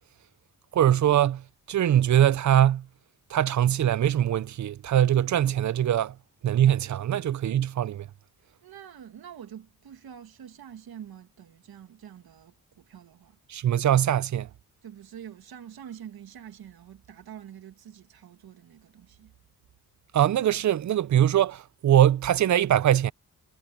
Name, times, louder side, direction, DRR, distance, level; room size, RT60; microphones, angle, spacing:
voice 1, 0.7-1.4 1.7-2.8 3.3-6.1 6.4-8.1 13.5-14.5 20.1-23.1, right 11 dB, 55° right, 0.6 m, -22 dB
voice 2, 8.6-13.4 14.8-19.3, right 9 dB, 80° right, 2.2 m, -46 dB
cardioid pair, 80°, 36 cm